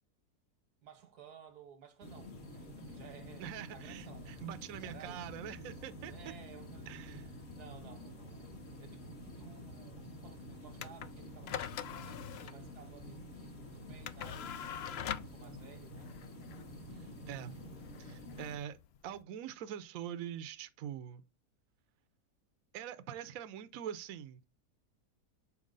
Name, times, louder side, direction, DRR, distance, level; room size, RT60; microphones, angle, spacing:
voice 1, 0.8-4.4 4.8-5.4 5.8-7.2 7.5-8.5 8.8-14.5 15.2-16.1, right 7 dB, 90° right, 1.7 m, -56 dB
sound 1, 2.0-18.6, left 1 dB, 55° left, 2.0 m, -49 dB
voice 2, 3.4-6.1 6.9-7.3 16.9-17.6 18.0-18.8 19.0-21.2 22.7-24.4, right 10 dB, 70° right, 1.0 m, -44 dB
sound 2, 10.7-19.2, left 9 dB, 70° left, 0.6 m, -44 dB
7.2 x 4.5 x 3.9 m
omnidirectional pair, 1.6 m